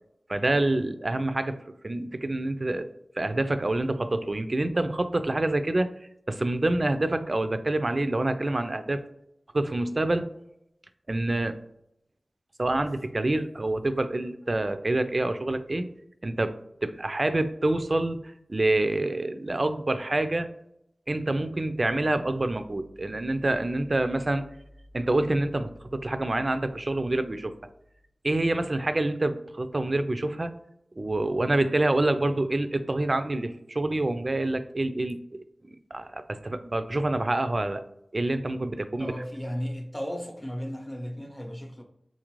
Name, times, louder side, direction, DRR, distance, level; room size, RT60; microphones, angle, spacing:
voice 1, 0.3-1.6 1.8-2.9 3.2-5.9 6.3-9.0 9.5-10.3 11.1-11.5 12.6-15.8 16.2-16.6 16.8-18.2 18.5-20.5 21.1-24.5 24.9-27.5 28.2-30.5 31.0-35.4 35.9-37.8 38.1-39.1, right 2 dB, 40° right, 10 dB, 0.3 m, -27 dB
voice 2, 39.0-41.8, equal, 20° left, 3 dB, 0.7 m, -35 dB
3.9 x 2.5 x 3.0 m, 0.78 s
wide cardioid pair, 75°, 0 cm